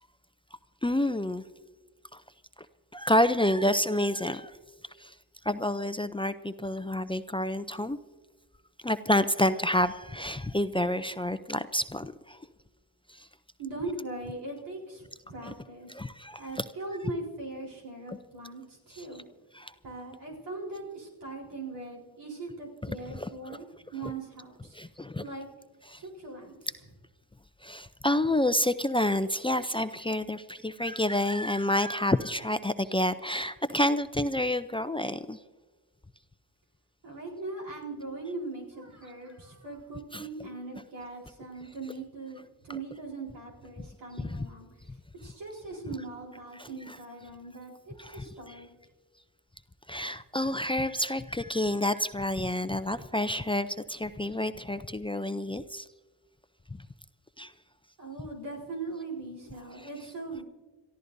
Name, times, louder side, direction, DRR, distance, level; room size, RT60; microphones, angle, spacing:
voice 1, 0.8-1.4 2.1-2.2 2.9-4.6 5.0-5.1 5.4-8.0 8.8-12.5 13.1-13.3 15.4-15.5 15.9-16.6 18.1-18.2 18.9-19.1 19.5-19.7 22.8-23.6 24.7-25.2 25.9-26.0 27.6-35.4 40.1-40.3 43.8-43.9 44.2-44.5 46.6-47.0 48.0-48.6 49.9-55.9 57.4-57.5, left 1 dB, 15° left, 11 dB, 0.5 m, -29 dB
voice 2, 13.6-16.0 16.4-19.2 19.8-24.8 25.2-25.5 25.9-26.7 37.0-44.7 45.2-48.7 58.0-60.4, right 3 dB, 85° right, -2 dB, 4.1 m, -40 dB
28.5 x 14.0 x 2.7 m, 1.2 s
cardioid pair, 60°, 40 cm